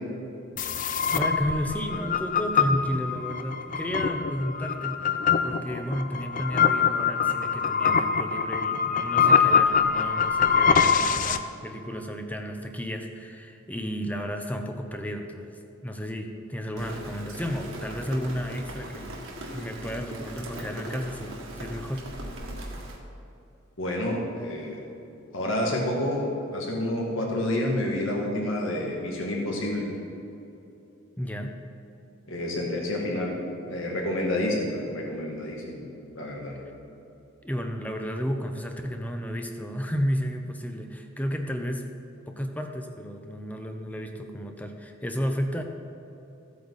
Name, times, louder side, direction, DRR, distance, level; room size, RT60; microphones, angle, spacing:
sound 1, 0.6-11.4, left 6 dB, 40° left, 0.4 m, -24 dB
voice 1, 1.1-19.2 19.5-22.1 31.2-31.6 36.9-37.0 37.4-41.9 42.3-45.6, equal, 5° left, 4 dB, 0.7 m, -32 dB
Rain, 16.8-23.0, right 1 dB, 70° right, 1.8 m, -39 dB
voice 2, 23.8-24.8 25.3-26.3 26.5-29.9 32.3-33.4 33.7-35.8 36.2-36.6, left 1 dB, 65° left, -2 dB, 2.1 m, -29 dB
15.0 x 8.5 x 4.1 m, 2.8 s
head